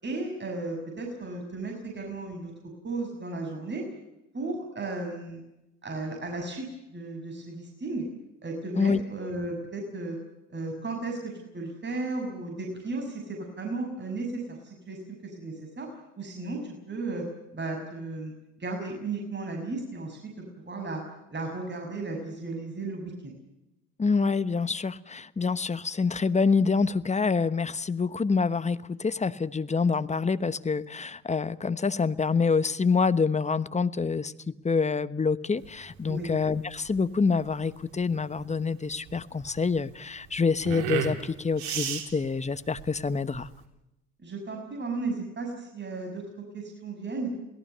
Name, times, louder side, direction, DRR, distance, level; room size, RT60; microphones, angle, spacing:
voice 1, 0.0-2.5 2.8-3.8 4.3-5.4 5.8-8.0 8.4-10.2 10.5-15.9 16.2-17.3 17.5-21.0 21.3-23.4 36.1-36.3 44.2-46.2 46.5-47.3, right 3 dB, 30° right, 2 dB, 6.4 m, -35 dB
voice 2, 24.0-43.5, left 4 dB, 20° left, 14 dB, 1.1 m, -26 dB
sound 1, 35.6-43.6, right 8 dB, 70° right, 3.6 m, -36 dB
28.0 x 18.0 x 6.8 m, 0.90 s
hypercardioid pair, 65°, 37 cm